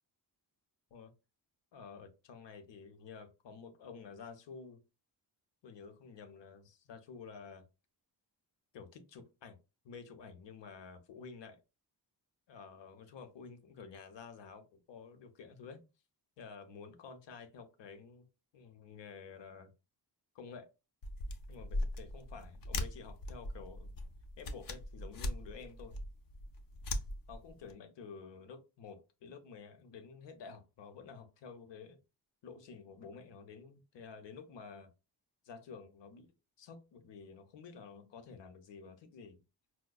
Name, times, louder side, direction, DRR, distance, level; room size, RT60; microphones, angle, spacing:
voice 1, 1.7-4.8 5.6-7.6 8.7-9.6 9.8-11.6 12.5-15.8 16.4-18.3 18.5-19.7 20.3-20.7 21.5-23.9 24.4-26.0 27.3-32.0 32.4-34.9 35.4-36.3 36.6-39.4, left 5 dB, 90° left, 0.7 m, -51 dB
sound 1, 21.0-27.7, left 1 dB, 55° left, 0.5 m, -40 dB
4.8 x 2.1 x 2.2 m
wide cardioid pair, 165°, 42 cm